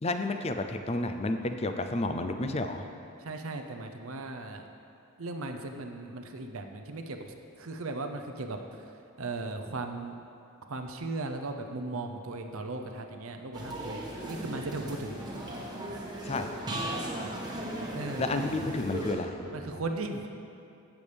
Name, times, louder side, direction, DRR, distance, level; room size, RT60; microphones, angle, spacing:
voice 1, 0.0-2.9 16.2-16.5 18.2-19.4, left 2 dB, 30° left, 7 dB, 0.5 m, -31 dB
voice 2, 3.2-4.7 5.2-8.9 9.2-10.2 10.7-15.2 17.9-18.5 19.5-20.2, right 2 dB, 75° right, 5 dB, 0.7 m, -37 dB
sound 1, 12.3-19.8, right 1 dB, 90° left, 2.3 m, -50 dB
sound 2, 13.5-19.1, right 1 dB, 20° right, 1.2 m, -37 dB
16.0 x 7.1 x 3.4 m, 2.7 s
head